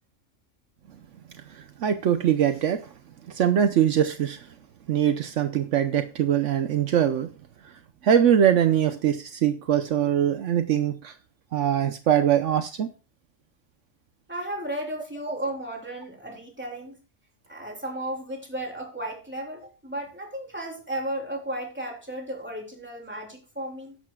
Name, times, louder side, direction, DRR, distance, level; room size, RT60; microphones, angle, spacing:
voice 1, 1.5-2.8 3.3-4.5 4.9-7.3 8.0-11.1 11.5-12.9, right 9 dB, 70° right, 1.1 m, -22 dB
voice 2, 14.3-17.0 17.5-24.0, right 1 dB, 10° right, 3.7 m, -34 dB
14.5 x 11.0 x 2.3 m
omnidirectional pair, 1.3 m